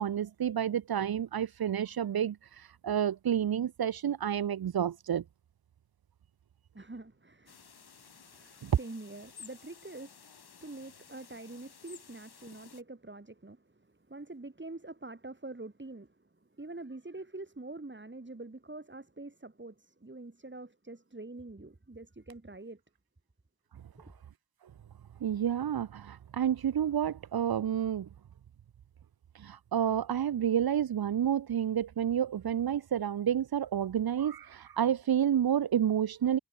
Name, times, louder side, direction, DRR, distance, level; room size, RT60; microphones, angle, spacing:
voice 1, 0.0-5.2 8.6-8.7 25.2-28.1 29.3-36.4, right 9 dB, 70° right, 0.6 m, -30 dB
voice 2, 6.7-22.8 24.0-24.1, right 2 dB, 30° right, 2.7 m, -46 dB
sound 1, 7.5-12.8, left 6 dB, 75° left, 1.4 m, -54 dB
cardioid pair, 45°, 38 cm